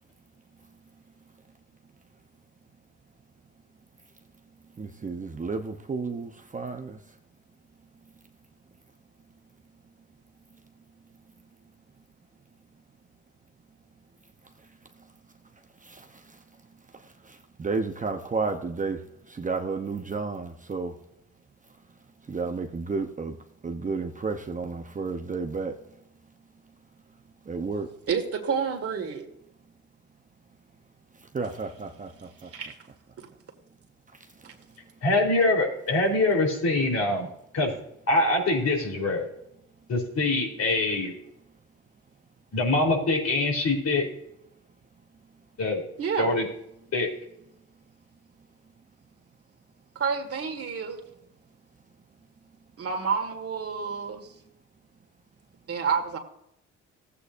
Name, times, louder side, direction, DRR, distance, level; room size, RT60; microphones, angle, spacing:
voice 1, 4.8-7.0 15.9-16.0 17.6-19.0 19.3-20.9 22.3-23.4 23.6-25.7 27.5-27.9 31.3-32.3, right 4 dB, 25° right, 4 dB, 0.8 m, -31 dB
voice 2, 28.1-29.3 32.4-32.8 33.2-33.3 34.4-34.5 46.0-46.3 50.0-51.0 52.8-54.3 55.7-56.2, right 6 dB, 50° right, 3 dB, 1.9 m, -29 dB
voice 3, 35.0-37.3 37.5-37.7 38.1-39.3 39.9-41.1 42.5-44.0 45.6-45.8 46.2-46.5 46.9-47.1, left 2 dB, 60° left, 1 dB, 3.7 m, -24 dB
15.0 x 8.3 x 2.6 m, 0.78 s
cardioid pair, 90°, 30 cm